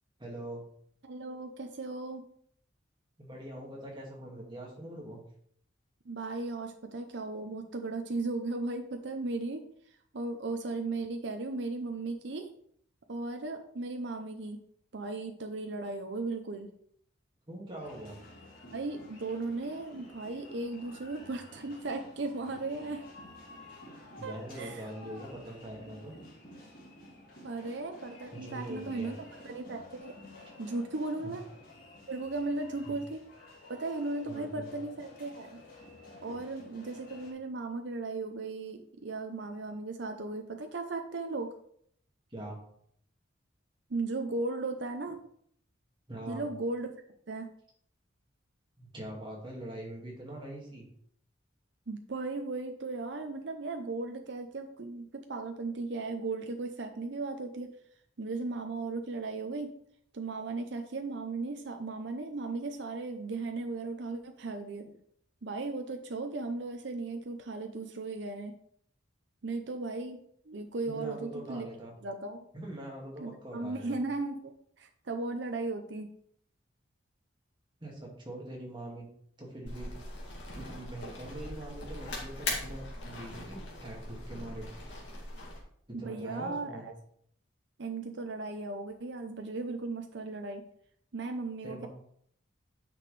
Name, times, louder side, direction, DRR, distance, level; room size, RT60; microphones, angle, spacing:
voice 1, 0.2-0.7 3.2-5.2 17.5-18.2 24.2-26.2 28.3-29.1 31.2-31.4 32.9-33.0 34.3-34.7 42.3-42.6 46.1-46.5 48.8-50.9 70.8-71.9 72.5-74.0 77.8-79.1 79.4-79.9 80.5-84.7 85.9-86.9 91.6-91.9, right 1 dB, 25° right, -2 dB, 2.1 m, -43 dB
voice 2, 1.0-2.2 6.1-9.6 10.1-12.5 13.1-14.6 14.9-16.7 18.7-23.0 24.2-24.9 27.4-29.1 29.4-30.2 30.6-31.4 32.1-33.2 33.7-35.6 36.2-41.5 43.9-45.2 46.3-47.0 47.3-47.5 51.9-57.7 58.2-59.7 60.1-64.9 65.4-68.5 69.4-71.7 72.0-72.5 73.2-76.1 85.9-86.9 87.8-90.6 91.1-91.9, right 3 dB, 65° right, 5 dB, 0.7 m, -36 dB
sound 1, 17.8-37.3, left 1 dB, 45° left, 2.7 m, -51 dB
sound 2, 79.7-85.6, left 2 dB, 65° left, 2.5 m, -40 dB
9.4 x 6.0 x 3.3 m, 0.65 s
head